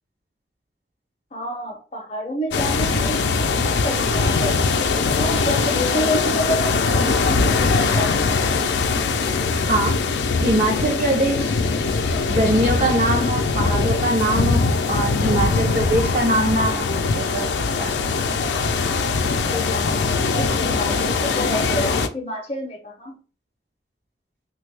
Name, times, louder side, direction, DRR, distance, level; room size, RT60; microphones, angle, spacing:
voice 1, 1.3-3.2 3.6-4.6 5.2-8.6 19.4-20.1 20.3-23.2, left 1 dB, 35° left, 0.6 m, -28 dB
sound 1, 2.5-22.1, left 4 dB, 85° left, 0.4 m, -21 dB
voice 2, 9.7-10.0 10.4-11.6 12.3-17.5 17.8-18.0, right 1 dB, 45° right, 0.5 m, -22 dB
3.3 x 2.3 x 3.2 m
head